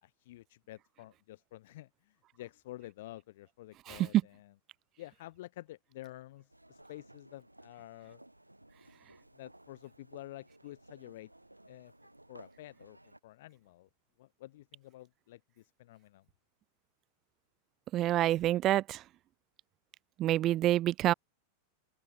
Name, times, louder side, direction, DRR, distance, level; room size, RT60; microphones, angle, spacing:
voice 1, 0.0-4.5 5.0-8.2 9.3-11.3 11.7-11.9 12.3-13.0 13.2-13.9 14.2-16.3, left 16 dB, 55° left, 2.4 m, -50 dB
sound 1, 6.5-13.2, right 1 dB, 85° right, 7.2 m, -58 dB
voice 2, 17.9-19.0 20.2-21.1, right 14 dB, 35° right, 0.3 m, -27 dB
figure-of-eight pair, 90°, 0 cm